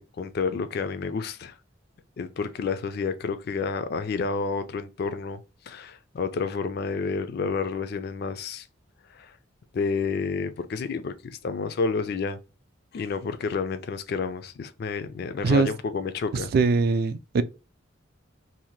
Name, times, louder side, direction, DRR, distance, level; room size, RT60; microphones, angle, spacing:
voice 1, 0.0-1.6 2.2-8.7 9.1-9.4 9.7-12.4 12.9-16.5, left 4 dB, 50° left, 0.3 m, -30 dB
voice 2, 16.5-17.4, right 4 dB, 50° right, 0.3 m, -21 dB
2.7 x 2.1 x 3.0 m
head